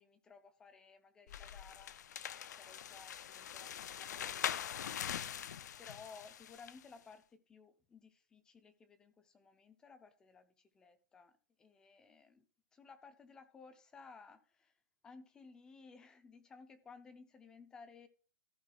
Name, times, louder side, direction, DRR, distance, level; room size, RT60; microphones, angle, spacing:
voice 1, 0.0-2.3 2.6-5.3 5.8-12.5 12.7-14.8 15.0-18.1, left 5 dB, 5° left, 0.5 m, -58 dB
sound 1, 1.3-6.8, left 9 dB, 65° left, 0.6 m, -43 dB
14.0 x 5.0 x 3.9 m
hypercardioid pair, 180°, 10 cm